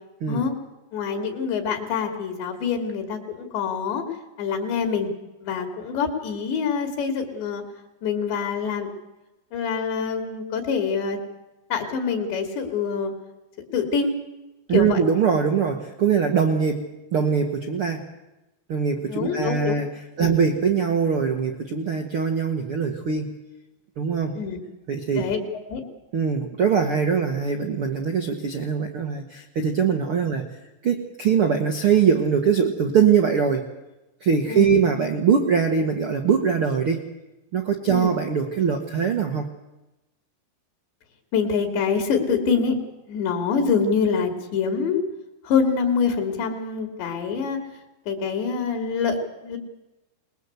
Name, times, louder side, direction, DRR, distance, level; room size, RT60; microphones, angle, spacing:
voice 1, 0.9-4.0 4.4-5.1 5.4-7.6 8.0-8.9 9.5-11.2 11.7-13.1 13.7-14.1 14.7-15.0 19.1-19.8 20.2-20.3 24.3-24.6 25.1-25.4 25.7-25.8 34.5-34.7 37.9-38.1 41.3-42.7 43.1-45.0 45.4-47.6 48.1-49.6, left 6 dB, 75° left, 4 dB, 4.9 m, -25 dB
voice 2, 14.7-16.8 17.1-18.0 18.7-19.9 20.2-23.3 24.0-24.4 24.9-25.2 26.1-30.4 30.8-33.6 34.2-37.0 37.5-39.5, right 6 dB, 90° right, 5 dB, 1.2 m, -22 dB
22.5 x 21.0 x 8.1 m, 0.99 s
omnidirectional pair, 5.1 m